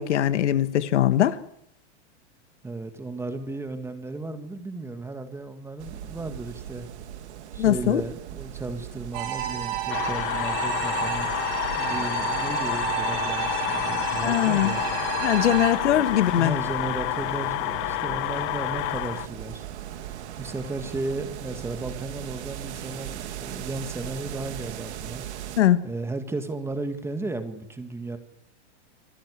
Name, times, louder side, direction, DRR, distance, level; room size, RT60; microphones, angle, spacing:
voice 1, 0.0-1.4 7.6-8.0 14.2-14.7 15.2-16.5 25.6-25.8, left 12 dB, 90° left, 13 dB, 1.7 m, -21 dB
voice 2, 2.6-6.9 7.5-11.3 11.8-14.8 16.3-19.7 20.4-25.2 25.8-28.2, right 2 dB, 5° right, 8 dB, 1.8 m, -34 dB
sound 1, 5.8-25.6, right 11 dB, 75° right, 2.9 m, -39 dB
sound 2, 9.1-15.7, right 11 dB, 50° right, 7.2 m, -31 dB
sound 3, 9.9-19.3, left 17 dB, 35° left, 1.1 m, -29 dB
27.0 x 14.5 x 9.8 m, 0.77 s
supercardioid pair, 150°, 34 cm